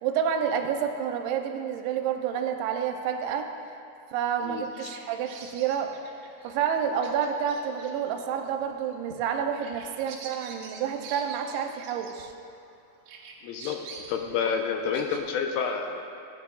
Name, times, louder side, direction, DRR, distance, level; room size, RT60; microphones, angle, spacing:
voice 1, 0.0-3.5 4.1-5.9 6.4-12.3, right 8 dB, 90° right, 4 dB, 2.6 m, -29 dB
Bird vocalization bird call bird song, 4.3-12.7 13.1-15.2, right 4 dB, 70° right, 2.0 m, -47 dB
voice 2, 4.4-4.9 13.4-13.8 14.1-16.0, left 6 dB, 80° left, 4 dB, 2.4 m, -29 dB
16.5 x 9.6 x 2.3 m, 2.6 s
omnidirectional pair, 4.5 m